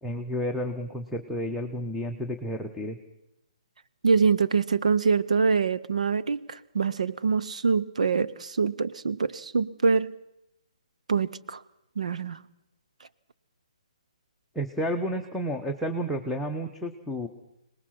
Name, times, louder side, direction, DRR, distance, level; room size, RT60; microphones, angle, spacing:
voice 1, 0.0-3.0 14.5-17.3, equal, ahead, 1.1 m, -31 dB
voice 2, 4.0-10.2 11.1-11.6 12.0-12.4, right 5 dB, 75° right, 0.9 m, -25 dB
23.5 x 19.5 x 5.9 m
hypercardioid pair, 145°, 4 cm